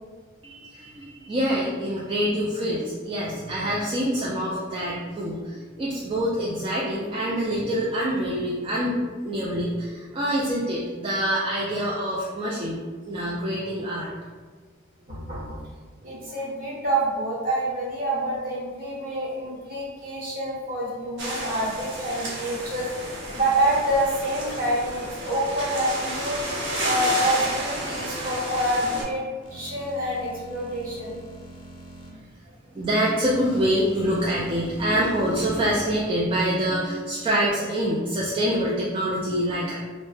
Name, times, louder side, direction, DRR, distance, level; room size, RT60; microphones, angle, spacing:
voice 1, 0.4-12.8 13.1-14.1 32.7-39.7, equal, 25° right, -6 dB, 0.3 m, -26 dB
voice 2, 15.1-15.6 16.0-29.2 29.5-31.1, right 1 dB, 50° right, -7 dB, 1.0 m, -27 dB
sound 1, 21.2-29.0, right 1 dB, 65° right, 0.7 m, -31 dB
sound 2, 29.4-32.1 33.2-36.0, right 1 dB, 40° left, 0.6 m, -42 dB
2.6 x 2.0 x 3.2 m, 1.5 s
head